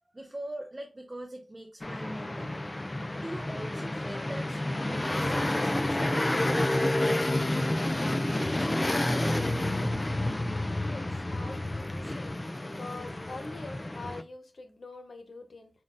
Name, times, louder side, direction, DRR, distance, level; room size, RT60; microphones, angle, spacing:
voice 1, 0.1-2.6 3.2-7.7 8.0-9.4, right 1 dB, 30° right, 0.6 m, -42 dB
sound 1, 1.8-14.2, left 1 dB, 30° left, 0.4 m, -29 dB
voice 2, 10.8-12.5 12.8-15.7, left 3 dB, 75° left, 0.8 m, -44 dB
4.2 x 3.9 x 2.4 m
wide cardioid pair, 75°, 0 cm